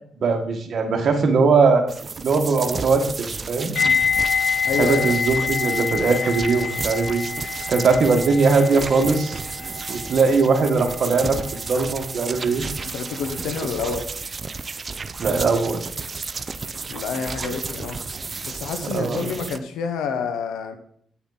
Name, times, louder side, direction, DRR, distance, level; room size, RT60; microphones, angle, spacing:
voice 1, 0.2-1.9 2.2-3.7 4.8-7.2 7.7-9.4 9.9-11.4 11.7-12.6 15.2-15.8 18.9-19.3, right 4 dB, 60° right, 4 dB, 1.7 m, -20 dB
sound 1, 1.9-19.6, right 4 dB, 40° right, 0.7 m, -33 dB
voice 2, 3.7-4.0 4.6-5.2 12.8-14.0 16.9-18.0 18.4-20.8, left 5 dB, 90° left, 8 dB, 1.1 m, -28 dB
sound 2, 3.8-12.7 13.0-13.3, left 6 dB, 60° left, 3.2 m, -27 dB
8.4 x 8.2 x 4.1 m, 0.64 s
cardioid pair, 70°, 0 cm